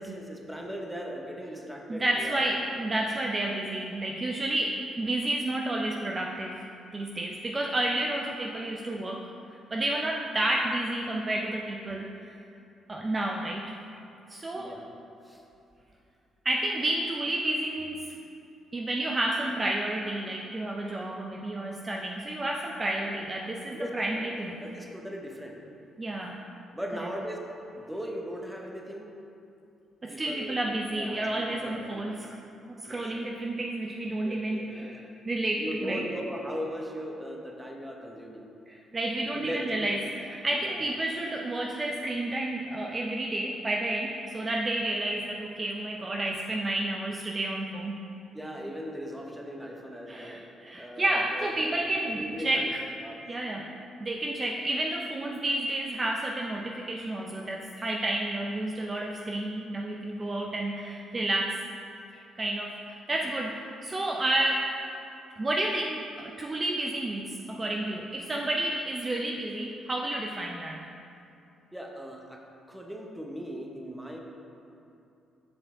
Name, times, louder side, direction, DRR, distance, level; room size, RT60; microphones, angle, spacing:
voice 1, 0.0-2.6 14.5-14.8 15.2-15.4 23.7-25.6 26.7-27.4 27.8-29.1 30.1-30.6 30.9-32.0 32.8-33.0 34.2-34.9 35.6-38.4 39.3-39.8 40.6-40.8 48.3-50.4 50.8-51.8 52.2-52.7 53.0-53.2 71.7-72.4 72.7-74.2, equal, 5° right, 0 dB, 0.9 m, -38 dB
voice 2, 1.9-9.3 9.7-12.3 12.9-13.7 14.3-14.8 16.4-18.2 18.7-24.6 26.0-26.4 30.0-32.4 32.7-36.1 38.7-48.0 50.1-52.8 53.3-53.7 54.0-61.6 62.1-64.7 65.4-70.8, right 1 dB, 30° right, 0 dB, 0.4 m, -31 dB
7.1 x 5.5 x 3.7 m, 2.7 s
cardioid pair, 90°, 0 cm